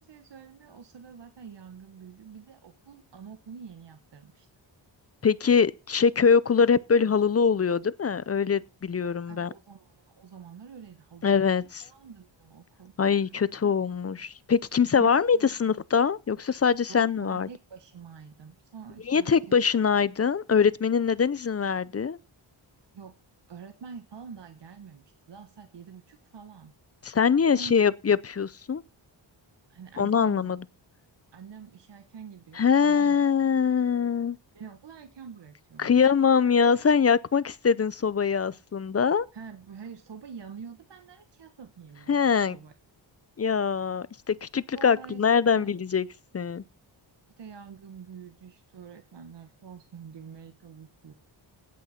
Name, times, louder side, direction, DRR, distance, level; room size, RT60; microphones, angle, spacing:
voice 1, 0.0-4.5 9.0-11.5 11.8-13.3 13.6-13.7 14.9-15.6 16.8-19.6 22.9-23.2 23.5-26.7 27.5-27.8 29.7-30.5 31.3-33.2 34.5-36.1 39.3-42.7 44.7-45.8 47.4-51.1, right 6 dB, 60° right, 1.3 m, -46 dB
voice 2, 5.2-9.5 11.2-11.8 13.0-17.5 19.1-22.2 27.0-28.8 30.0-30.6 32.6-34.4 35.8-39.3 42.1-42.6 43.4-46.1 46.3-46.6, left 6 dB, 30° left, 0.6 m, -23 dB
17.5 x 6.2 x 5.8 m
wide cardioid pair, 115°, 46 cm